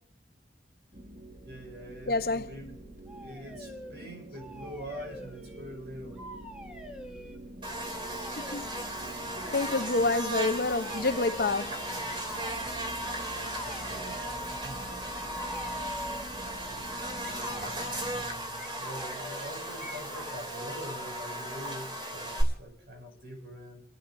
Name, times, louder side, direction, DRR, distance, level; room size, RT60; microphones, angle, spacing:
sound 1, 0.9-18.2, right 1 dB, 45° right, 1.6 m, -47 dB
voice 1, 1.4-2.8 3.1-6.3 13.3-14.2 14.6-14.9 16.7-23.8, equal, 75° right, 5.8 m, -44 dB
voice 2, 2.1-2.6 8.4-8.7 9.5-11.8, left 3 dB, 55° left, 0.7 m, -28 dB
sound 2, 3.1-3.9 4.3-5.8 6.1-7.4 8.1-8.6 9.5-10.1 10.8-11.6 12.1-12.8 13.4-14.3 15.1-16.3 17.2-17.7 18.6-19.5 19.8-20.5, left 1 dB, 5° right, 1.5 m, -46 dB
Buzz, 7.6-22.4, right 1 dB, 25° right, 2.6 m, -36 dB
30.0 x 10.5 x 2.5 m
head